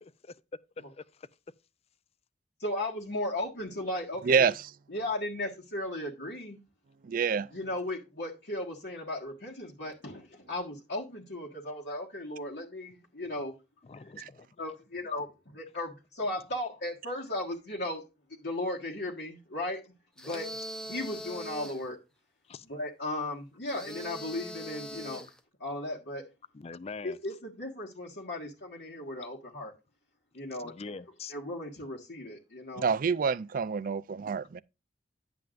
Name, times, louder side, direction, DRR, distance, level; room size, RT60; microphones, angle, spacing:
voice 1, 0.0-0.4 0.9-1.3 13.8-14.5 22.5-22.7 26.5-27.2 30.6-31.3, left 4 dB, 35° left, 0.4 m, -44 dB
voice 2, 2.6-4.5 4.9-6.6 7.5-13.6 14.6-18.1 18.4-20.6 20.9-22.0 22.7-25.3 25.6-26.3 27.0-29.7 30.3-30.7 31.3-32.9, left 1 dB, 70° left, 1.6 m, -36 dB
voice 3, 7.1-7.5 14.2-14.3 32.8-34.6, right 6 dB, 50° right, 0.4 m, -27 dB
sound 1, 20.2-21.9 23.7-25.4, equal, 5° left, 0.7 m, -41 dB
10.5 x 7.7 x 2.5 m
head